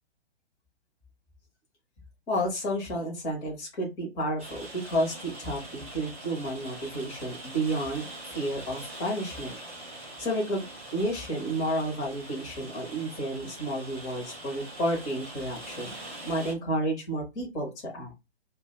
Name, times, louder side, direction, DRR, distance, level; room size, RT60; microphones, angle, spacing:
voice 1, 2.3-9.5 10.2-18.1, right 1 dB, 10° left, -2 dB, 0.7 m, -31 dB
Rain, 4.4-16.5, right 1 dB, 15° right, 0.4 m, -43 dB
2.5 x 2.2 x 3.7 m, 0.24 s
figure-of-eight pair, 130°, 34 cm